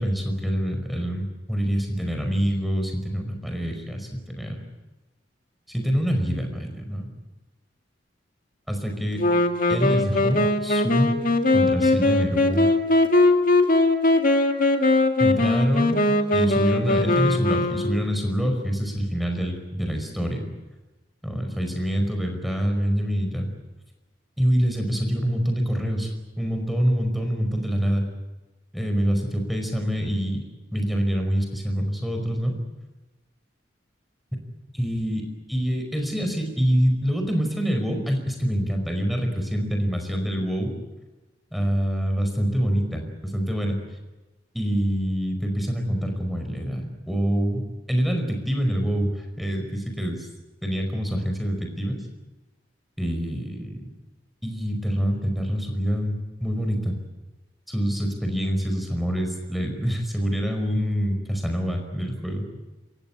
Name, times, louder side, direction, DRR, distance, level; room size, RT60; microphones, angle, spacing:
voice 1, 0.0-4.6 5.7-7.1 8.7-9.2 9.7-11.2 11.5-12.7 15.2-16.0 16.3-20.5 21.2-23.5 24.4-28.0 28.7-30.4 30.7-32.6 34.7-40.7 41.5-43.8 44.5-50.3 50.6-52.0 53.0-53.8 54.4-56.1 56.4-56.9 57.7-62.5, equal, ahead, 4 dB, 5.1 m, -26 dB
Wind instrument woodwind instrument, 9.2-18.2, left 2 dB, 50° left, 2.0 m, -20 dB
28.5 x 16.0 x 9.8 m, 1.1 s
head